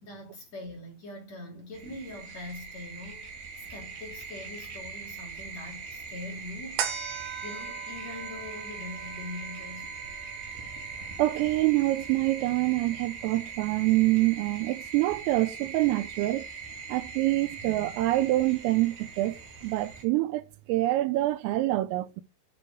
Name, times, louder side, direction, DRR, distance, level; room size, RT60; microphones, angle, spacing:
voice 1, 0.0-6.9 7.4-10.0, left 2 dB, 40° left, 3.4 m, -43 dB
sound 1, 1.7-20.0, right 5 dB, 55° right, 4.2 m, -41 dB
sound 2, 6.8-13.5 14.0-14.1, right 8 dB, 70° right, 3.9 m, -40 dB
voice 2, 11.2-16.5 16.9-22.2, right 17 dB, 85° right, 3.4 m, -26 dB
10.0 x 6.6 x 6.1 m
omnidirectional pair, 5.9 m